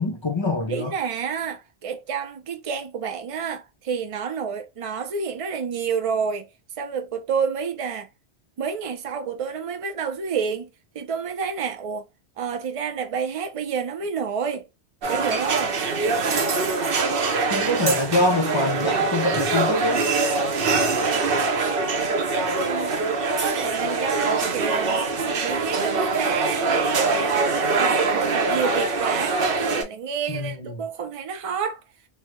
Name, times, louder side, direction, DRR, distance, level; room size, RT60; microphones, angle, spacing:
voice 1, 0.0-0.9 17.5-20.1 30.3-30.8, left 2 dB, 35° left, 0.5 m, -25 dB
voice 2, 0.7-6.5 6.8-8.1 8.6-12.1 12.4-14.7 15.1-15.7 22.6-25.1 25.4-26.6 27.0-31.8, right 6 dB, 40° right, 0.5 m, -29 dB
sound 1, 15.0-29.8, right 4 dB, 60° right, 0.9 m, -23 dB
3.3 x 2.2 x 3.0 m
omnidirectional pair, 1.1 m